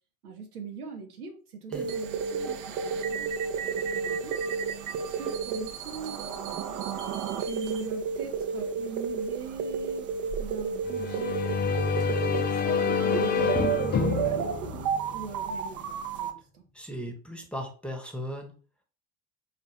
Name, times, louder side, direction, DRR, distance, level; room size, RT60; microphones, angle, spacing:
voice 1, 0.2-4.6 5.0-6.8 7.4-10.1 10.4-11.4 12.1-14.6 15.1-16.7, right 5 dB, 90° right, 2 dB, 0.9 m, -41 dB
sound 1, 1.7-16.3, right 6 dB, 45° right, 0.6 m, -32 dB
sound 2, 10.9-15.6, left 5 dB, 25° left, 0.4 m, -28 dB
voice 2, 16.7-18.5, equal, ahead, 4 dB, 0.9 m, -37 dB
4.0 x 2.5 x 3.2 m, 0.40 s
hypercardioid pair, 65°, 44 cm